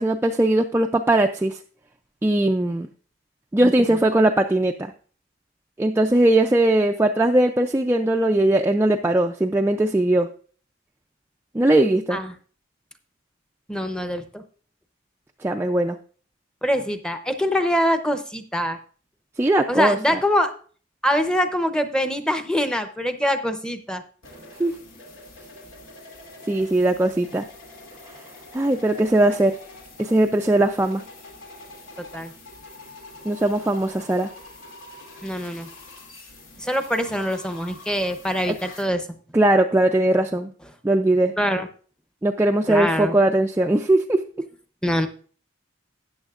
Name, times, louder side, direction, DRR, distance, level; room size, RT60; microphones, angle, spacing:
voice 1, 0.0-1.6 2.2-2.9 3.5-4.9 5.8-10.3 11.5-12.2 15.4-16.0 19.4-20.2 24.6-24.8 26.5-27.5 28.5-29.6 30.0-31.0 33.2-34.3 38.5-38.6 39.3-40.5 40.8-41.3 42.2-44.2, right 1 dB, 10° right, 3 dB, 0.3 m, -20 dB
voice 2, 13.7-14.4 16.6-18.8 19.7-20.5 21.0-24.0 32.1-32.3 35.2-35.7 36.6-39.1 41.4-41.7 42.7-43.1 44.8-45.1, equal, 5° left, 8 dB, 0.7 m, -24 dB
sound 1, 24.2-38.8, left 2 dB, 90° left, 2.4 m, -45 dB
13.5 x 9.0 x 2.4 m, 0.42 s
head